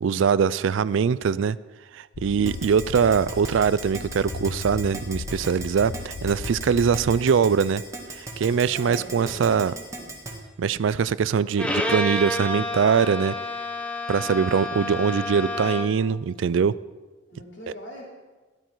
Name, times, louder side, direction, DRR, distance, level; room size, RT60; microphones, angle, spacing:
voice 1, 0.0-1.6 1.9-7.8 8.1-9.7 10.6-13.3 14.1-16.7, right 6 dB, 70° right, 18 dB, 0.4 m, -22 dB
sound 1, 2.1-7.2, left 4 dB, 85° left, 0.5 m, -37 dB
Keyboard (musical), 2.5-10.3, right 3 dB, 15° right, 1.7 m, -36 dB
voice 2, 8.6-10.1 17.3-18.0, left 1 dB, 60° left, -2 dB, 3.2 m, -41 dB
Bowed string instrument, 11.6-16.1, left 1 dB, 5° left, 1.0 m, -29 dB
13.0 x 12.0 x 4.6 m, 1.3 s
head